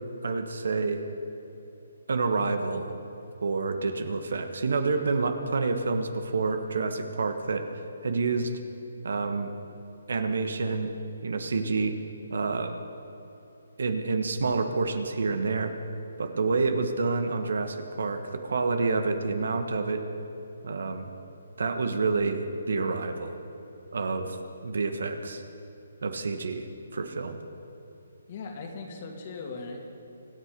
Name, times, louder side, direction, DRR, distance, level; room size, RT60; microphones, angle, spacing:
voice 1, 0.2-1.0 2.1-2.9 3.4-7.7 8.0-8.5 9.0-9.5 10.1-10.9 11.2-12.0 12.3-12.7 13.8-15.7 16.2-20.0 20.6-21.1 21.6-23.4 23.9-24.4 24.6-25.4 26.0-26.7 26.9-27.4, right 4 dB, 70° right, 7 dB, 1.4 m, -28 dB
voice 2, 28.3-29.9, left 4 dB, 45° left, 1 dB, 2.6 m, -39 dB
25.5 x 10.0 x 5.3 m, 3.0 s
hypercardioid pair, 155°, 0 cm